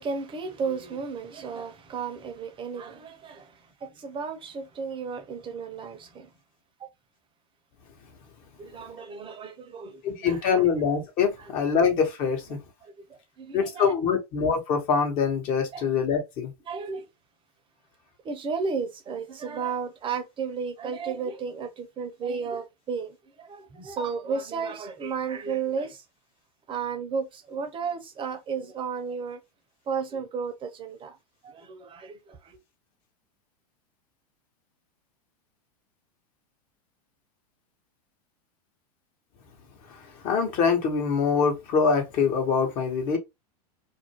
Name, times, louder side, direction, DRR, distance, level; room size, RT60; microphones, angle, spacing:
voice 1, 0.0-6.3 6.8-6.9 8.6-10.6 12.8-12.9 13.4-13.9 15.7-15.8 16.7-17.1 18.2-26.0 26.7-29.4 29.9-31.2 31.4-32.6, right 5 dB, 25° right, 0.7 m, -33 dB
voice 2, 10.0-12.6 13.5-16.5 40.2-43.2, left 6 dB, 45° left, 1.0 m, -24 dB
2.5 x 2.1 x 3.0 m
hypercardioid pair, 105°, 20 cm